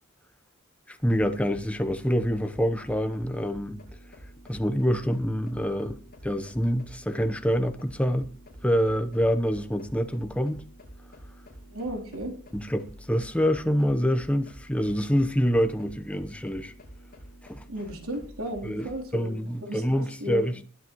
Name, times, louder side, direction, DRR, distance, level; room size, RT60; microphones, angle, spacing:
voice 1, 0.9-3.8 4.5-8.3 8.6-10.6 12.5-16.7 17.5-17.6 18.6-20.6, equal, 5° left, 0.9 m, -26 dB
sound 1, 1.0-19.1, equal, 45° left, 7.9 m, -48 dB
voice 2, 11.7-12.3 17.7-19.4 19.6-20.5, equal, 90° right, 3.5 m, -35 dB
20.5 x 10.0 x 3.1 m
head